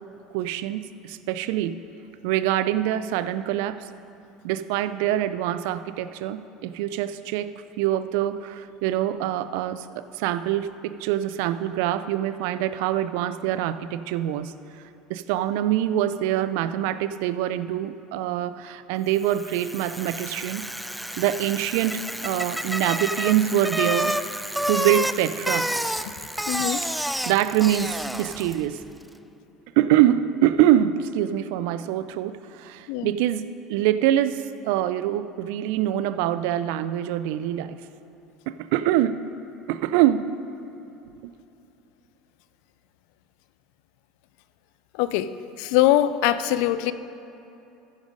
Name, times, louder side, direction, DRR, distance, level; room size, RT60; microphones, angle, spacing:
voice 1, 0.3-1.8 2.2-3.9 4.4-14.5 15.1-20.7 21.2-24.2 24.7-25.7 26.8-28.8 29.8-37.8 38.5-39.2 39.7-40.3 41.2-41.3, right 12 dB, 75° right, 14 dB, 0.4 m, -24 dB
Bicycle, 19.2-28.7, equal, ahead, 0.3 m, -29 dB
voice 2, 26.5-26.8 32.9-33.1 44.9-45.3 45.6-46.9, left 13 dB, 75° left, 13 dB, 0.4 m, -22 dB
14.5 x 5.3 x 5.1 m, 2.9 s
supercardioid pair, 105°, 0 cm